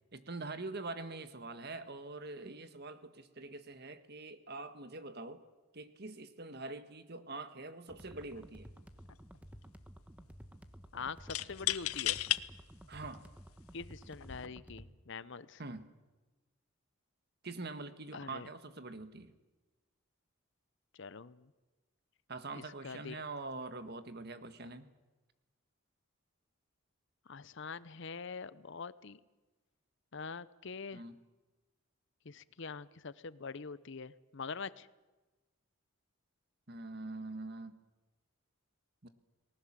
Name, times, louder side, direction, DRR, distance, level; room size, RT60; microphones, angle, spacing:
voice 1, 0.1-5.4 5.7-8.7 12.9-13.2 15.6-15.9 17.4-19.3 22.3-24.9 30.9-31.2 36.7-37.8 39.0-39.1, right 3 dB, 50° right, 10 dB, 1.6 m, -44 dB
sound 1, 7.9-14.9, equal, 5° right, 1.2 m, -53 dB
sound 2, 8.2-8.4 8.7-9.4 11.3-12.4 13.1-13.2 14.1-14.5, left 15 dB, 90° left, 0.7 m, -34 dB
voice 2, 10.9-12.2 13.7-15.6 18.1-18.5 21.0-21.5 22.5-23.2 27.3-29.2 30.1-31.0 32.2-34.9, left 5 dB, 60° left, 17 dB, 0.7 m, -44 dB
30.0 x 19.5 x 7.5 m, 1.2 s
head